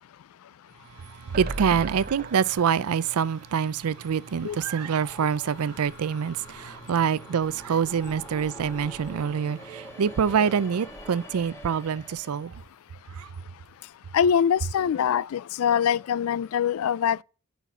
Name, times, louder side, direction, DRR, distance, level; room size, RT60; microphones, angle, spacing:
voice 1, 1.0-12.5 13.2-13.3, right 7 dB, 85° right, 0.4 m, -26 dB
sound 1, 1.3-4.6 4.9-5.0 5.3-5.4, right 3 dB, 40° right, 0.6 m, -38 dB
sound 2, 4.3-12.5, right 1 dB, 10° left, 1.3 m, -45 dB
voice 2, 14.1-17.2, left 8 dB, 75° left, 0.3 m, -23 dB
6.8 x 5.8 x 5.9 m
head